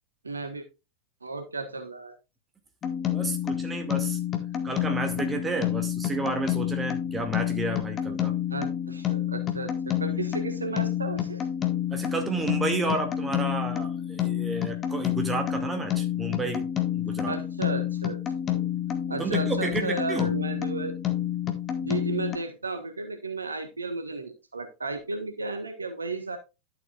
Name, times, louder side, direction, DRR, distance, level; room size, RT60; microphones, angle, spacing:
voice 1, 0.2-0.6 1.2-2.2 8.5-11.5 17.3-18.2 18.5-18.6 19.1-20.9 21.8-26.4, right 3 dB, 75° right, 1.5 m, -34 dB
sound 1, 2.8-22.4, left 11 dB, 25° left, 1.7 m, -29 dB
voice 2, 3.1-4.2 4.6-8.3 11.9-17.4 19.2-20.3, right 3 dB, 15° right, 2.2 m, -31 dB
12.0 x 7.4 x 2.5 m
figure-of-eight pair, 90°, 0 cm